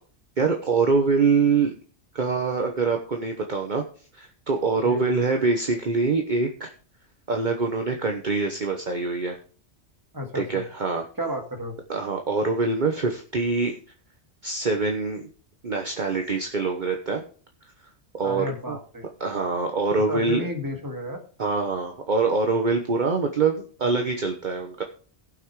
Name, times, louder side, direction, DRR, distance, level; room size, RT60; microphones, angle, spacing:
voice 1, 0.4-1.7 2.1-3.8 4.1-6.7 7.3-9.4 10.3-11.0 11.9-13.8 14.4-15.3 15.6-17.2 18.1-18.8 19.2-20.5 21.4-24.8, right 4 dB, 45° right, 3 dB, 1.2 m, -24 dB
voice 2, 4.8-5.1 10.1-10.6 11.2-11.8 18.2-19.1 20.1-21.2, left 1 dB, 15° right, 3 dB, 1.9 m, -32 dB
17.0 x 6.0 x 4.8 m, 0.42 s
omnidirectional pair, 1.2 m